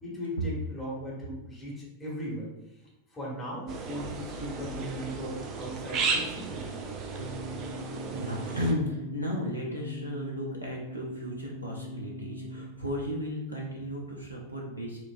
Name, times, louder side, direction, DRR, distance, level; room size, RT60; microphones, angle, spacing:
voice 1, 0.0-2.5 3.1-6.7, equal, 15° left, -5 dB, 1.1 m, -37 dB
sound 1, 3.7-8.7, right 4 dB, 35° right, 0.4 m, -34 dB
sound 2, 7.2-12.6, left 1 dB, 85° left, 0.4 m, -41 dB
voice 2, 7.8-15.0, left 1 dB, 85° right, -2 dB, 0.5 m, -34 dB
4.4 x 2.4 x 2.6 m, 0.92 s
figure-of-eight pair, 90°, 0 cm